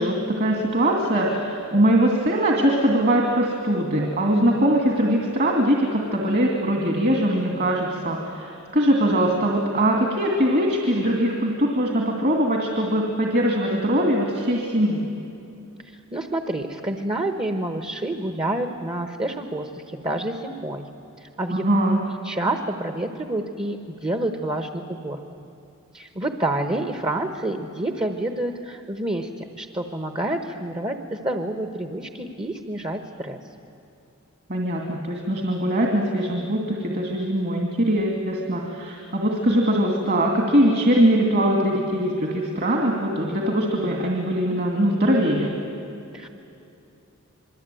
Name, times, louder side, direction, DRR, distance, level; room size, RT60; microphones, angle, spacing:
voice 1, 0.0-15.1 21.5-22.0 34.5-45.5, right 1 dB, 45° right, 0 dB, 2.5 m, -21 dB
voice 2, 16.1-20.8 21.2-21.6 22.2-25.4 25.9-33.4 46.1-46.3, right 1 dB, 25° right, 6 dB, 1.2 m, -28 dB
27.5 x 22.0 x 9.3 m, 2.7 s
head